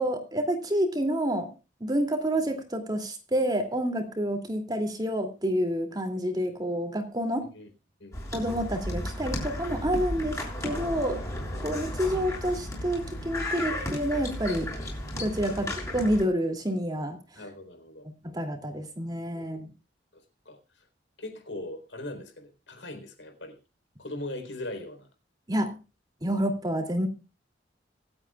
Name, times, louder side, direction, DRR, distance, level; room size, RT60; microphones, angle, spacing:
voice 1, 0.0-1.5 1.8-7.5 8.3-11.2 11.6-14.7 15.1-15.7 15.9-17.2 18.2-19.7 25.5-25.8 26.2-27.1, equal, 20° right, 5 dB, 2.7 m, -28 dB
voice 2, 8.0-8.4 15.4-15.7 17.4-18.1 19.3-19.6 20.1-20.9 21.2-23.6 24.0-25.1, left 1 dB, 80° left, 6 dB, 4.1 m, -40 dB
sound 1, 8.1-16.2, left 1 dB, 20° left, 6.6 m, -34 dB
25.5 x 8.8 x 2.4 m, 0.30 s
head